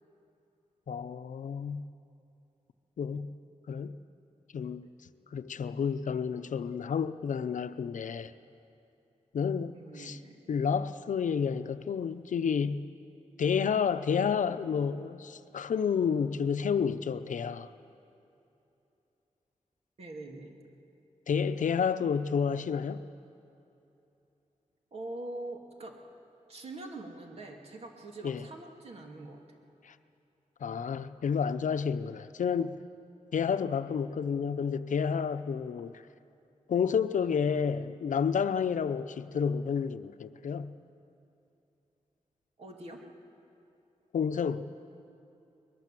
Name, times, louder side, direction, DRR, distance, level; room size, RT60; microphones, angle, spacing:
voice 1, 0.9-1.8 3.0-3.3 3.7-4.0 4.5-4.9 5.3-8.3 9.3-10.2 10.5-12.9 13.4-17.7 21.3-23.0 28.2-28.4 29.8-29.9 30.6-32.8 33.3-36.0 36.7-40.7 44.1-44.7, left 6 dB, 85° left, 0.7 m, -30 dB
voice 2, 9.7-10.4 20.0-20.6 24.9-26.0 26.5-29.4 42.6-43.0, right 2 dB, 55° right, 2.5 m, -43 dB
23.0 x 20.5 x 7.6 m
wide cardioid pair, 170°, 13 cm